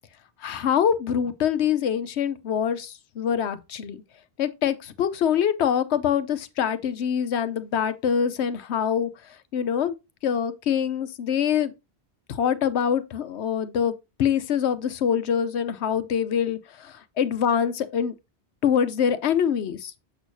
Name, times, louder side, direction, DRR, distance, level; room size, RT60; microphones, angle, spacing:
voice 1, 0.4-4.0 4.4-9.1 9.5-9.9 10.2-11.7 12.3-13.9 14.2-18.1 18.6-19.9, left 8 dB, 80° left, 1.0 m, -24 dB
7.1 x 6.3 x 2.6 m
omnidirectional pair, 1.1 m